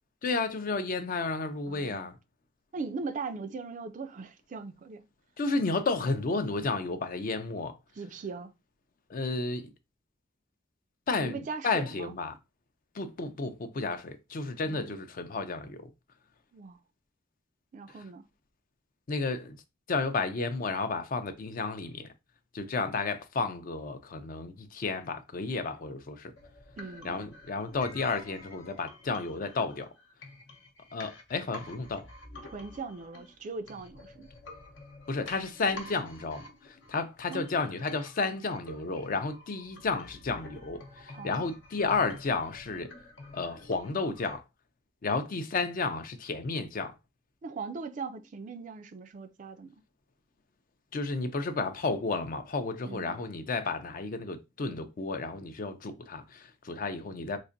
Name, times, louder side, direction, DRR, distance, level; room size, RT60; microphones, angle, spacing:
voice 1, 0.2-2.2 5.4-7.8 9.1-9.7 11.1-12.4 12.9-15.9 19.1-19.6 19.9-22.1 22.5-26.3 27.0-29.9 30.9-32.1 35.1-42.9 43.3-44.4 45.0-47.0 50.9-57.4, left 3 dB, 45° left, 0.4 m, -32 dB
voice 2, 1.7-2.1 2.7-5.1 8.0-8.5 11.2-12.1 14.6-14.9 16.5-16.8 17.7-18.2 26.8-27.2 32.4-34.3 37.3-37.7 41.1-41.5 47.4-49.8 52.8-53.2, right 4 dB, 40° right, 0.4 m, -40 dB
sound 1, 26.4-44.4, left 2 dB, 70° left, 0.8 m, -49 dB
3.9 x 2.5 x 2.5 m
head